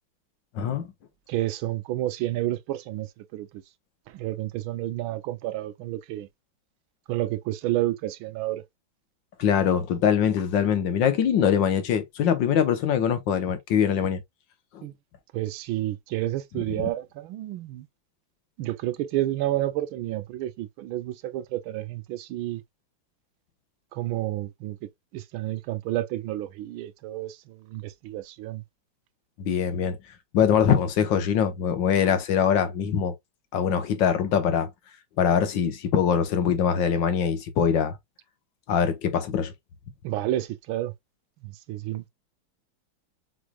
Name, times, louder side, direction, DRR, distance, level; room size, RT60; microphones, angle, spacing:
voice 1, 0.6-0.9 9.4-14.2 14.7-14.9 16.8-16.9 29.4-30.0 30.3-33.2 33.5-34.7 35.2-38.0 38.7-39.5, left 8 dB, 70° left, 1.6 m, -23 dB
voice 2, 1.3-3.6 4.1-6.3 7.1-8.6 14.8-14.9 15.3-17.9 18.6-22.6 23.9-24.8 25.1-28.6 40.0-40.9 41.4-42.1, right 15 dB, 85° right, 1.4 m, -30 dB
6.2 x 3.3 x 2.3 m
omnidirectional pair, 2.2 m